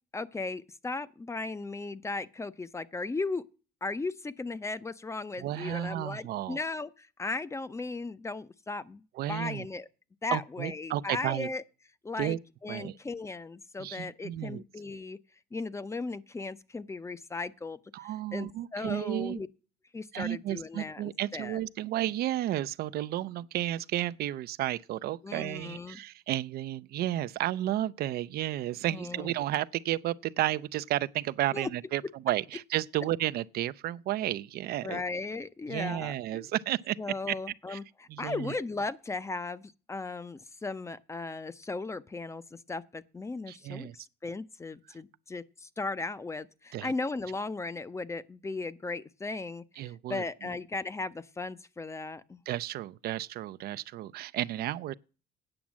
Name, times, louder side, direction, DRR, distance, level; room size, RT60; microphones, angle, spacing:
voice 1, 0.1-3.5 3.8-9.0 9.3-9.9 10.2-11.6 12.0-12.4 12.6-15.2 15.5-19.5 19.9-21.6 25.2-26.0 28.9-29.3 31.5-31.7 34.8-36.5 37.0-43.9 44.2-52.4, left 3 dB, 15° left, 0.5 m, -37 dB
voice 2, 5.4-6.6 9.2-9.7 10.3-11.5 12.2-12.4 12.7-13.0 13.8-14.6 17.9-19.4 20.1-35.0 35.7-37.0 37.3-37.4 37.7-37.8 38.1-38.5 43.5-44.0 46.7-46.9 49.8-50.5 52.5-54.9, right 14 dB, 65° right, 0.4 m, -32 dB
8.8 x 6.0 x 7.2 m
cardioid pair, 110°, 17 cm